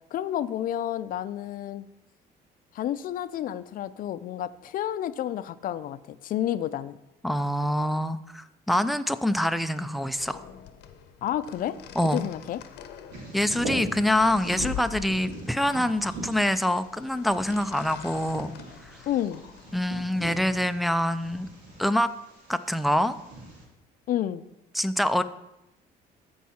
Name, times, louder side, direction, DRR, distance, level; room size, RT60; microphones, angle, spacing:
voice 1, 0.1-1.9 2.7-7.0 11.2-11.8 12.1-12.6 19.1-19.4 24.1-24.4, left 11 dB, 55° left, 15 dB, 0.5 m, -30 dB
voice 2, 7.2-10.4 12.0-12.3 13.3-18.5 18.9-19.0 19.7-21.5 21.8-22.1 22.5-23.2 24.7-25.2, left 1 dB, ahead, 10 dB, 0.4 m, -25 dB
sound 1, 10.1-20.0, left 9 dB, 85° left, 0.8 m, -44 dB
Bird vocalization bird call bird song, 13.1-23.6, right 2 dB, 85° right, 3.3 m, -41 dB
14.0 x 4.7 x 4.3 m, 0.90 s
cardioid pair, 110°, 17 cm